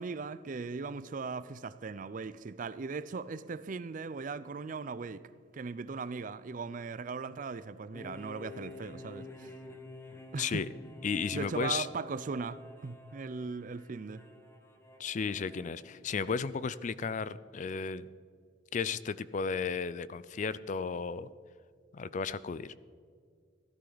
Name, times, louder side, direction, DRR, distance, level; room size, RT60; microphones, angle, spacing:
voice 1, 0.0-5.3 5.5-9.5 10.3-10.7 11.3-14.2, right 4 dB, 45° right, 0.4 m, -38 dB
sound 1, 7.9-16.3, left 2 dB, 15° left, 0.9 m, -51 dB
voice 2, 11.0-11.9 15.0-18.1 18.7-21.3 21.9-22.8, left 5 dB, 40° left, 0.4 m, -34 dB
14.5 x 12.5 x 4.0 m
head